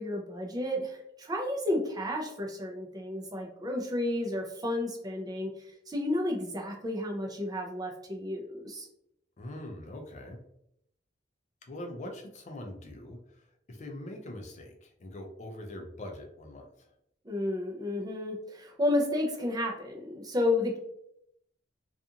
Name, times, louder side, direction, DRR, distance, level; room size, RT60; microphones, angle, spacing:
voice 1, 0.0-8.9 17.2-20.8, left 1 dB, 20° right, 0 dB, 0.4 m, -32 dB
voice 2, 9.4-10.4 11.7-16.7, left 1 dB, 40° left, 2 dB, 0.4 m, -43 dB
2.4 x 2.4 x 2.7 m, 0.75 s
head